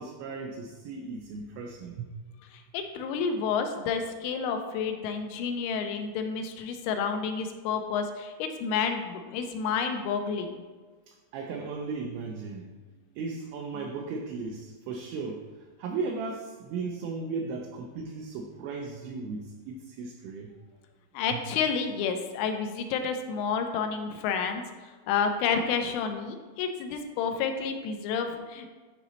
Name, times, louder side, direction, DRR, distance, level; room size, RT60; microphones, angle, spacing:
voice 1, 0.0-2.1 11.1-12.7 13.2-15.4 15.8-20.5 21.3-21.4, right 4 dB, 85° right, 2 dB, 2.6 m, -36 dB
voice 2, 2.5-10.6 13.7-13.8 21.1-24.6 25.1-28.7, left 6 dB, 85° left, 6 dB, 3.0 m, -30 dB
10.5 x 4.0 x 3.0 m, 1.4 s
omnidirectional pair, 5.7 m